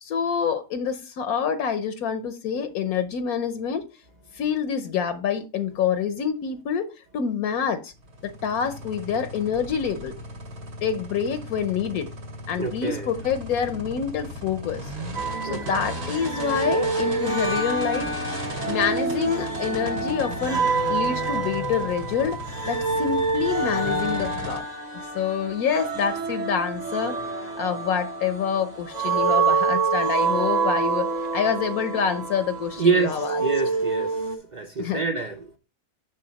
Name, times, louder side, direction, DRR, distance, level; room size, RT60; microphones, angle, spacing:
voice 1, 0.0-3.8 4.3-6.9 7.1-7.9 8.2-10.2 10.8-12.1 12.5-14.9 15.4-18.1 18.7-24.7 25.1-33.4 34.8-35.0, left 7 dB, 75° left, 1.2 m, -27 dB
sound 1, 8.0-24.6, right 1 dB, 80° right, 2.9 m, -36 dB
voice 2, 12.6-13.1 15.5-15.8 32.8-34.2 34.5-35.6, right 4 dB, 50° right, 0.5 m, -26 dB
sound 2, 15.1-34.4, right 4 dB, 30° right, 1.2 m, -27 dB
6.4 x 6.3 x 3.9 m
omnidirectional pair, 1.6 m